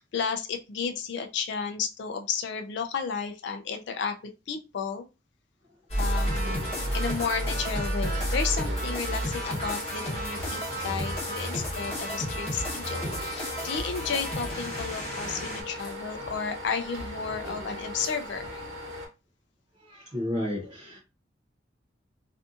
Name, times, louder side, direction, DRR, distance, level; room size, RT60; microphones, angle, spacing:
voice 1, 0.0-5.0 6.0-6.6 6.9-18.6, left 6 dB, 65° left, 6 dB, 0.3 m, -33 dB
sound 1, 5.9-15.6, equal, 30° left, 0.9 m, -31 dB
sound 2, 6.0-19.1, left 1 dB, 80° right, 1.1 m, -39 dB
voice 2, 19.8-21.0, left 1 dB, 25° right, -4 dB, 0.5 m, -32 dB
2.5 x 2.5 x 2.4 m, 0.28 s
head